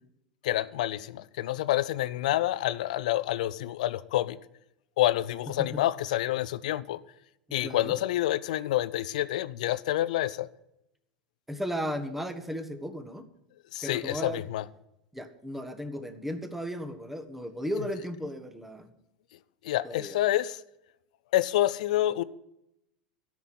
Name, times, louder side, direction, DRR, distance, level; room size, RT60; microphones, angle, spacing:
voice 1, 0.4-4.4 5.0-7.0 7.5-10.5 13.7-14.6 19.6-20.6 21.3-22.2, left 14 dB, 70° left, 0.6 m, -28 dB
voice 2, 7.6-8.0 11.5-13.3 13.8-14.4 15.1-18.9 19.8-20.2, equal, 5° right, 1.4 m, -35 dB
12.5 x 6.1 x 9.4 m
hypercardioid pair, 85°, 4 cm